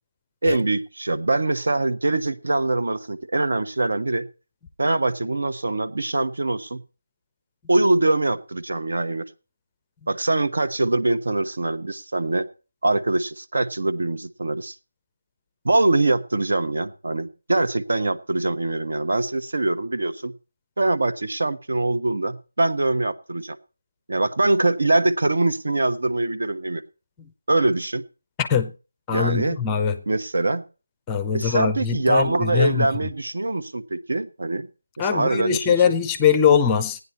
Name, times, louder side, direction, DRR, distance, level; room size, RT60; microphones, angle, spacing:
voice 1, 0.4-4.3 4.8-6.8 7.7-9.3 10.1-12.5 12.8-14.7 15.6-20.3 20.8-23.6 24.1-26.8 27.5-28.0 29.1-29.6 30.1-30.6 31.3-34.7 35.0-35.8, right 2 dB, 65° right, 1.2 m, -23 dB
voice 2, 28.4-28.7 29.1-30.0 31.1-32.9 35.0-37.0, left 7 dB, 10° left, 0.6 m, -21 dB
16.5 x 9.8 x 4.2 m
figure-of-eight pair, 170°, 0 cm